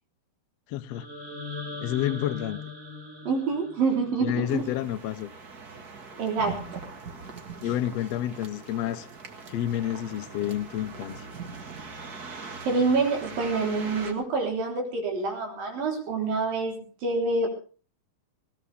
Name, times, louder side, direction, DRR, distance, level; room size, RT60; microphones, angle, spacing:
voice 1, 0.7-1.1 1.8-2.6 4.2-5.3 7.6-9.1 9.5-11.3, left 12 dB, 75° left, 1.5 m, -29 dB
sound 1, 0.9-5.0, left 3 dB, 20° right, 3.5 m, -40 dB
voice 2, 3.3-4.6 6.2-6.8 12.7-17.5, right 3 dB, 70° right, 5.5 m, -27 dB
sound 2, 4.5-14.1, right 4 dB, 40° right, 1.5 m, -41 dB
20.0 x 17.0 x 3.4 m
omnidirectional pair, 4.2 m